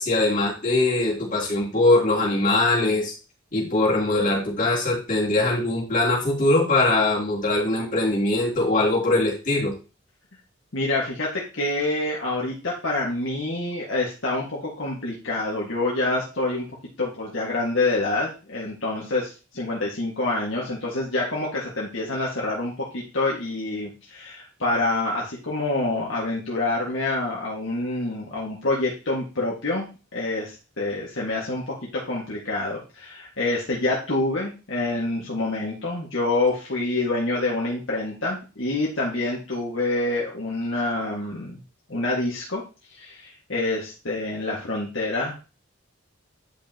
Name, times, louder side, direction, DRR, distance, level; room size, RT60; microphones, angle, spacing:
voice 1, 0.0-3.1 3.5-9.7, left 2 dB, 40° left, -5 dB, 3.2 m, -22 dB
voice 2, 10.7-16.7 17.0-29.9 30.1-31.7 32.1-41.6 41.9-42.6 42.9-45.3, left 2 dB, 60° left, -4 dB, 1.8 m, -27 dB
10.0 x 5.5 x 2.9 m, 0.32 s
head